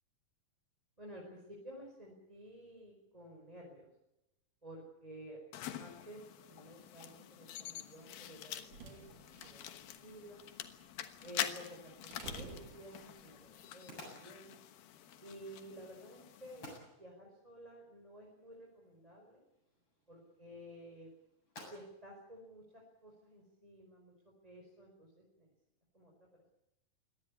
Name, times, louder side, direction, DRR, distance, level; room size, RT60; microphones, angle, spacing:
voice 1, 1.0-3.9 4.6-5.4 5.8-9.0 9.3-10.5 11.2-14.5 15.2-16.7 17.0-19.4 20.1-21.1 21.6-25.5 25.9-26.3, equal, 10° right, -1 dB, 4.7 m, -53 dB
sound 1, 5.5-16.8, left 11 dB, 90° left, 3.2 m, -46 dB
sound 2, 8.2-13.5, right 4 dB, 65° right, 4.1 m, -54 dB
sound 3, 11.7-23.4, left 1 dB, 30° left, 8.5 m, -59 dB
24.0 x 18.0 x 8.5 m, 0.88 s
omnidirectional pair, 4.1 m